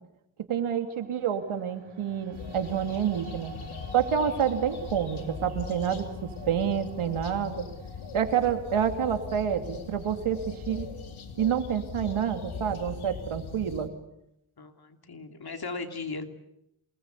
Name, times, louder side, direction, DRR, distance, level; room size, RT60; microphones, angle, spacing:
voice 1, 0.5-3.5 3.9-7.6 8.1-10.9 11.4-13.9, right 8 dB, 90° right, 6 dB, 2.9 m, -28 dB
sound 1, 0.9-13.1, right 2 dB, 65° right, 4.7 m, -50 dB
sound 2, 2.3-13.9, left 6 dB, 75° left, 3.0 m, -40 dB
voice 2, 14.6-16.3, left 3 dB, 50° left, 6 dB, 3.2 m, -37 dB
28.0 x 20.0 x 8.3 m, 0.80 s
cardioid pair, 70°, 48 cm